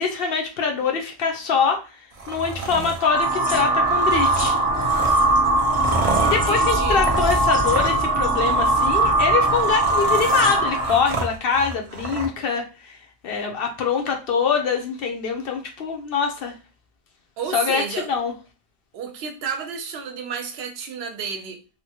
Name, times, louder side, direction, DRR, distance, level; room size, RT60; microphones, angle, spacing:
voice 1, 0.0-1.9 2.3-4.6 6.2-13.0 13.2-16.5 17.5-18.3, left 5 dB, 70° left, 0.8 m, -24 dB
sound 1, 2.1-3.0 3.9-8.1 8.4-8.9 9.3-12.3, right 3 dB, 45° right, 0.5 m, -30 dB
sound 2, 3.0-11.0, right 2 dB, 10° right, 0.7 m, -20 dB
voice 2, 6.5-7.0 17.4-18.1 18.9-21.6, right 6 dB, 90° right, 0.8 m, -31 dB
2.9 x 2.1 x 2.8 m
omnidirectional pair, 1.0 m